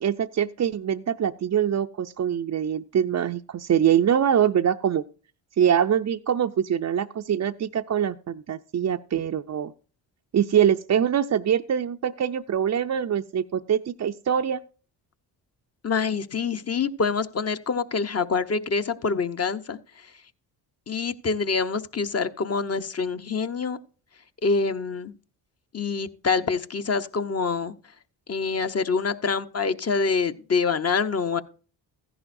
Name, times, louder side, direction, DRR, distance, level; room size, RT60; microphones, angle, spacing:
voice 1, 0.0-5.0 5.6-9.7 10.3-14.6, right 9 dB, 40° right, 5 dB, 0.5 m, -24 dB
voice 2, 15.8-19.8 20.9-23.8 24.4-25.1 25.7-27.7 28.3-31.4, left 5 dB, 30° left, 10 dB, 0.9 m, -26 dB
14.5 x 11.0 x 2.6 m, 0.37 s
supercardioid pair, 50°, 46 cm